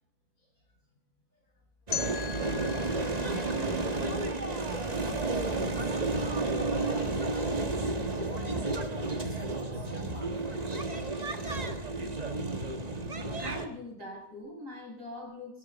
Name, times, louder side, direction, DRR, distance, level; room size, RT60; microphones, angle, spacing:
voice 1, 0.4-1.0 1.3-2.3 2.8-11.2, left 1 dB, 75° left, -2 dB, 5.5 m, -50 dB
sound 1, 1.9-4.9, left 9 dB, 55° left, 0.8 m, -40 dB
sound 2, 1.9-13.7, right 2 dB, 30° right, 1.5 m, -31 dB
voice 2, 13.4-15.6, left 1 dB, 65° right, -1 dB, 7.3 m, -42 dB
24.5 x 12.5 x 4.1 m, 0.76 s
omnidirectional pair, 1.5 m